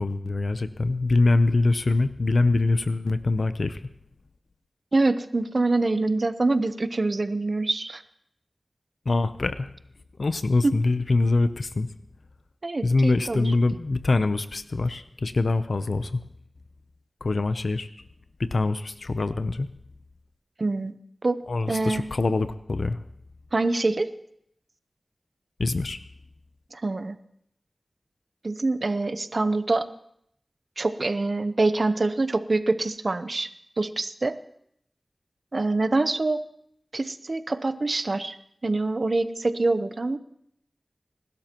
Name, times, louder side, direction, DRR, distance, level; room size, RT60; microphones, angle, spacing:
voice 1, 0.0-3.8 9.1-9.7 10.2-11.9 12.8-16.2 17.2-17.9 18.4-19.7 21.5-23.0 25.6-26.0, left 3 dB, 75° left, 11 dB, 0.7 m, -24 dB
voice 2, 4.9-8.0 10.6-10.8 12.6-13.5 20.6-20.9 21.2-21.4 21.7-22.0 23.5-24.1 26.7-27.2 28.4-29.9 30.8-33.5 33.8-34.4 35.5-36.4 36.9-38.3 38.6-40.2, right 2 dB, 60° right, 11 dB, 0.8 m, -25 dB
27.5 x 12.0 x 3.0 m, 0.72 s
wide cardioid pair, 55°, 0 cm